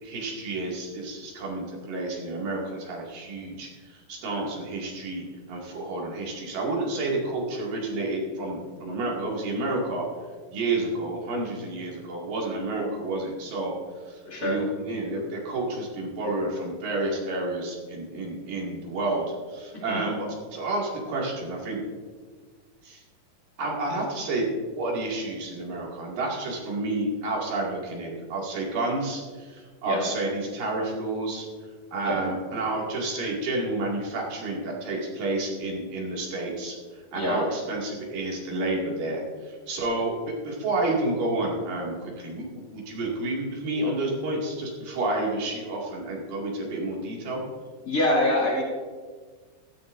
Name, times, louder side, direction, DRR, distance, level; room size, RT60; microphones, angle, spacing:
voice 1, 0.0-10.0 10.5-13.7 14.1-21.8 22.8-23.0 23.6-24.5 24.8-31.5 31.9-40.1 40.4-47.4, right 2 dB, 80° right, -3 dB, 4.1 m, -30 dB
voice 2, 14.3-14.6 19.7-20.1 29.8-30.0 32.0-32.2 37.1-37.4 47.8-48.6, left 1 dB, 25° left, -3 dB, 2.5 m, -25 dB
16.0 x 13.5 x 2.7 m, 1.5 s
omnidirectional pair, 3.8 m